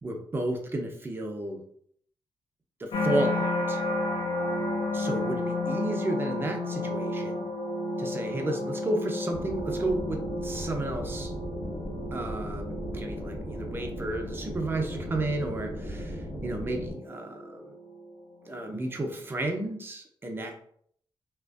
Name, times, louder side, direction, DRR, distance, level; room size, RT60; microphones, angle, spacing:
voice 1, 0.0-1.6 2.8-3.8 4.9-7.5 8.0-11.3 12.1-17.7 18.4-20.6, right 2 dB, 25° right, 3 dB, 0.4 m, -32 dB
sound 1, 2.9-18.1 18.6-19.1, left 2 dB, 75° left, 0.5 m, -33 dB
sound 2, 9.3-16.9, equal, 5° left, 0.8 m, -37 dB
2.7 x 2.4 x 2.3 m, 0.64 s
wide cardioid pair, 135°, 9 cm